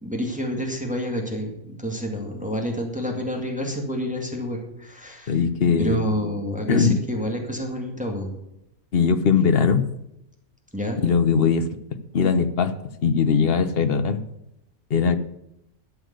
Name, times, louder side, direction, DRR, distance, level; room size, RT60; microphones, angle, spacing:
voice 1, 0.0-5.4 5.8-8.3 10.7-11.0, equal, 5° right, 1 dB, 2.1 m, -28 dB
voice 2, 5.3-6.1 6.7-7.0 8.9-9.9 11.0-11.7 12.1-12.7 13.0-14.2 14.9-15.2, left 6 dB, 50° left, 11 dB, 1.1 m, -20 dB
12.0 x 7.1 x 8.0 m, 0.83 s
omnidirectional pair, 1.4 m